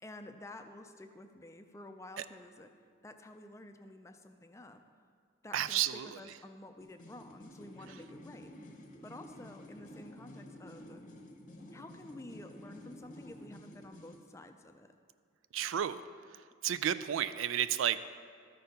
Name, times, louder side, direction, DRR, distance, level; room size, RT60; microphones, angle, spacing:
voice 1, 0.0-2.7 3.0-4.8 5.4-8.5 9.0-11.0 11.7-14.9, left 1 dB, 15° left, 7 dB, 0.4 m, -51 dB
voice 2, 5.5-6.2 15.5-18.0, right 10 dB, 90° right, 14 dB, 0.3 m, -32 dB
sound 1, 6.8-14.3, left 1 dB, 40° left, 0.7 m, -51 dB
13.0 x 4.5 x 5.2 m, 2.2 s
head